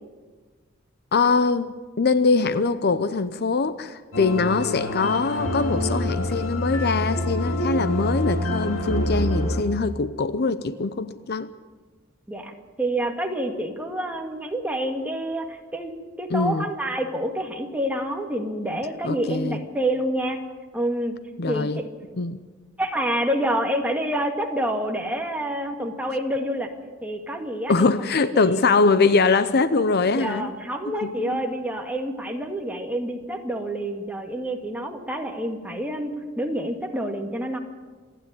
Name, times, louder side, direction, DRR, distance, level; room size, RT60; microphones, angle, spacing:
voice 1, 1.1-11.5 16.3-16.7 19.0-19.6 21.4-21.8 22.1-22.4 27.7-30.5 30.9-31.4, left 4 dB, 55° left, 0.7 m, -22 dB
sound 1, 4.1-9.6, left 1 dB, 70° left, 2.7 m, -26 dB
voice 2, 12.3-15.9 16.2-20.4 20.7-21.2 21.5-21.8 22.8-26.7 27.0-27.9 28.3-28.6 30.1-37.6, right 1 dB, 5° right, 2.0 m, -28 dB
27.0 x 10.0 x 9.9 m
head